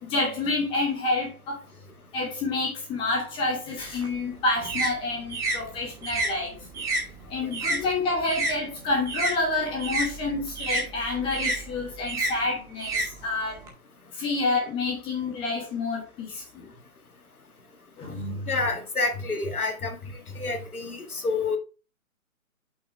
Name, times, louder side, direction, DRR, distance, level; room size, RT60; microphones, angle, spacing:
voice 1, 0.0-1.6 2.1-6.7 7.3-13.6 14.1-16.7 18.0-18.5, left 2 dB, 10° left, 1.3 m, -28 dB
sound 1, 3.8-8.6 8.9-13.7, right 2 dB, 5° right, 1.0 m, -30 dB
voice 2, 18.5-20.0 20.4-21.6, left 3 dB, 90° left, 1.7 m, -28 dB
6.8 x 5.6 x 3.4 m
hypercardioid pair, 145°, 42 cm